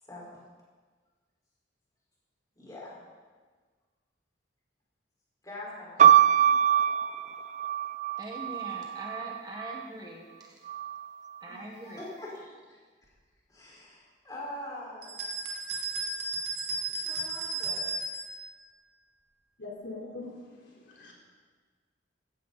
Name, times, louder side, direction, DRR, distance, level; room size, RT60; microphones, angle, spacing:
voice 1, 0.0-0.4 2.5-3.0 5.4-6.3 11.5-12.8 13.5-15.3 16.9-18.0, left 1 dB, 20° left, -5 dB, 4.7 m, -44 dB
sound 1, 6.0-9.8 10.7-11.4, right 9 dB, 35° right, 0.4 m, -24 dB
voice 2, 8.2-10.6 11.4-12.0, right 1 dB, 20° right, -1 dB, 1.4 m, -42 dB
sound 2, 15.0-18.3, right 3 dB, 60° right, 2.4 m, -34 dB
voice 3, 19.6-21.1, left 3 dB, 70° left, -3 dB, 3.7 m, -42 dB
15.0 x 15.0 x 4.1 m, 1.5 s
head